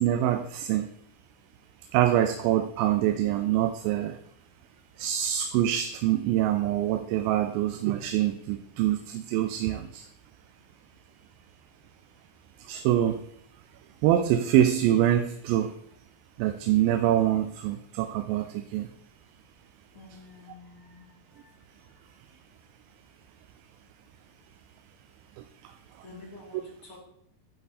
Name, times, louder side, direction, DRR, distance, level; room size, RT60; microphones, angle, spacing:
voice 1, 0.0-0.9 1.9-4.2 5.0-10.0 12.7-13.2 14.0-15.7 16.4-18.9, right 12 dB, 90° right, 8 dB, 2.4 m, -25 dB
voice 2, 19.9-21.1 26.0-27.0, left 3 dB, 35° left, -5 dB, 2.9 m, -48 dB
10.5 x 4.4 x 4.2 m, 0.72 s
omnidirectional pair, 4.1 m